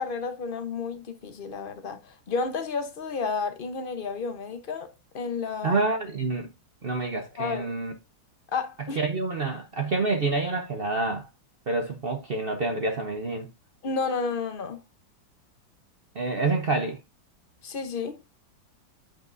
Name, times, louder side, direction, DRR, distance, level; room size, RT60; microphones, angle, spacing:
voice 1, 0.0-4.9 5.1-5.8 7.4-7.7 8.5-9.0 13.8-14.8 17.6-18.2, left 5 dB, 55° left, 0.5 m, -31 dB
voice 2, 5.6-6.5 6.8-7.9 9.0-11.3 11.7-13.5 16.1-17.0, right 3 dB, 75° right, 0.5 m, -27 dB
8.9 x 5.4 x 2.6 m
omnidirectional pair, 2.2 m